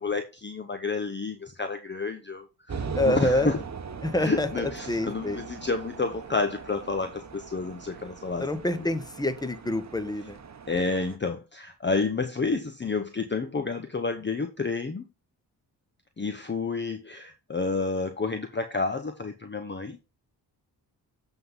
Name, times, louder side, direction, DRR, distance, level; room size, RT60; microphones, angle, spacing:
voice 1, 0.0-3.6 4.2-8.5 8.7-8.9 10.7-15.0 16.2-20.0, left 4 dB, 25° left, 0.9 m, -30 dB
sound 1, 2.7-11.2, right 5 dB, 35° right, 1.0 m, -40 dB
voice 2, 2.9-3.5 4.0-5.4 8.4-10.4, left 1 dB, 10° left, 1.3 m, -27 dB
7.5 x 3.9 x 5.6 m
supercardioid pair, 50°, 45 cm